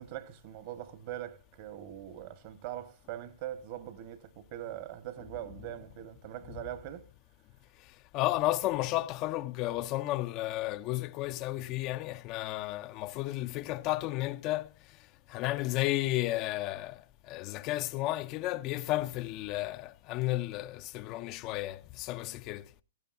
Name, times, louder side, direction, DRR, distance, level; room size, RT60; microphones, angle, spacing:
voice 1, 0.0-7.1, right 12 dB, 45° right, 1.4 m, -42 dB
voice 2, 8.1-14.7 15.3-22.7, left 17 dB, 35° left, 0.5 m, -33 dB
17.0 x 14.5 x 2.6 m
hypercardioid pair, 120°, 0 cm